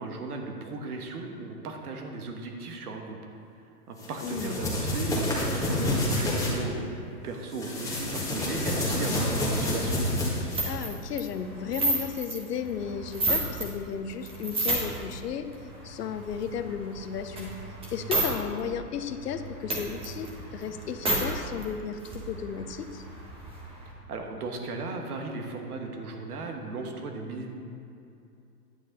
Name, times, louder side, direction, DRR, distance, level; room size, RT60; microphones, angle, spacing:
voice 1, 0.0-3.2 3.9-10.0 24.1-27.5, right 3 dB, 65° right, 3 dB, 1.5 m, -36 dB
sound 1, 4.0-6.5 7.5-10.7, left 1 dB, 5° left, 1.7 m, -28 dB
voice 2, 4.2-4.6 10.7-15.5 15.8-17.5 17.9-23.0, left 7 dB, 75° left, 9 dB, 0.8 m, -34 dB
sound 2, 10.5-13.7 14.1-15.1 15.5-18.3 18.6-18.7 19.0-21.2 21.6-21.7 21.9-23.9, right 2 dB, 10° right, 1.2 m, -32 dB
9.7 x 7.7 x 4.0 m, 2.7 s
hypercardioid pair, 135°, 48 cm